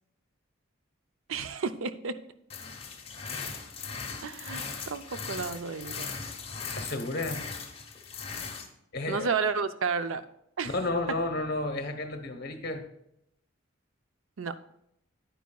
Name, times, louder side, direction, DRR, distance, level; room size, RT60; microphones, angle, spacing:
voice 1, 1.3-2.1 4.2-6.1 9.1-10.2 10.6-10.7 14.4-14.5, right 5 dB, 75° right, 11 dB, 0.5 m, -31 dB
sound 1, 2.5-8.7, left 5 dB, 30° left, 1.0 m, -39 dB
voice 2, 6.7-7.4 8.9-9.4 10.6-12.8, left 2 dB, 50° left, 6 dB, 1.1 m, -32 dB
10.5 x 9.3 x 2.3 m, 0.76 s
head